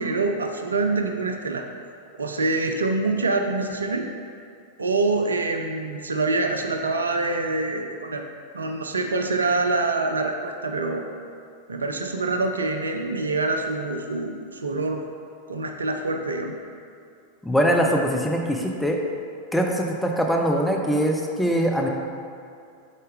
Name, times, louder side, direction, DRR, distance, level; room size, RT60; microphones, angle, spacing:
voice 1, 0.0-1.7 2.2-4.1 4.8-8.2 8.5-11.0 11.7-15.0 15.5-16.6, right 3 dB, 75° right, 4 dB, 0.5 m, -25 dB
voice 2, 17.4-19.0 19.5-21.9, equal, 5° left, 0 dB, 0.6 m, -22 dB
6.3 x 4.4 x 3.6 m, 2.4 s
figure-of-eight pair, 90°, 0 cm